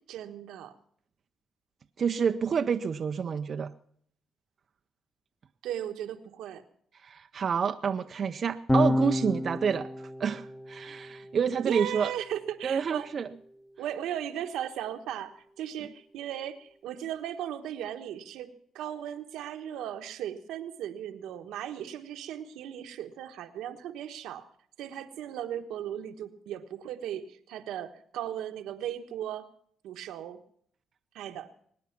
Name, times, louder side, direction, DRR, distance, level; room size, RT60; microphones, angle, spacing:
voice 1, 0.1-0.7 5.6-6.6 11.6-13.1 13.8-24.5 24.8-29.5 29.8-30.4 31.1-31.5, right 10 dB, 85° right, 6 dB, 1.2 m, -37 dB
voice 2, 2.0-3.7 6.9-12.1 12.6-13.3, right 6 dB, 50° right, 7 dB, 0.6 m, -29 dB
Electric guitar / Bass guitar, 8.7-15.1, left 1 dB, 10° left, 1.2 m, -33 dB
23.0 x 9.7 x 5.9 m, 0.65 s
cardioid pair, 90°, 0 cm